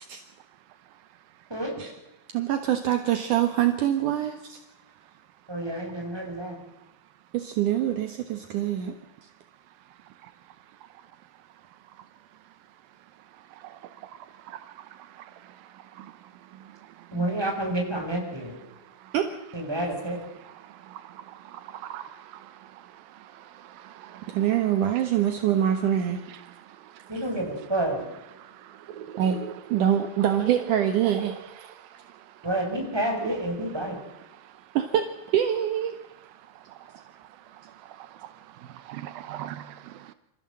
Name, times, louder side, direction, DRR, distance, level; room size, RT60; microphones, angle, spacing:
voice 1, 2.3-4.6 7.3-8.9 19.1-19.2 24.3-26.2 29.2-29.4 29.7-31.4 34.7-35.1 35.3-36.0, right 10 dB, 65° right, 7 dB, 2.7 m, -24 dB
voice 2, 5.5-6.6 17.1-18.6 19.5-20.2 27.1-28.0 32.4-34.0, right 1 dB, 5° right, 1 dB, 6.0 m, -29 dB
voice 3, 21.7-22.1 24.0-24.2 28.9-29.1 31.0-31.3 38.9-39.9, right 11 dB, 85° right, 12 dB, 2.7 m, -38 dB
27.0 x 15.0 x 7.6 m, 0.95 s
omnidirectional pair, 4.1 m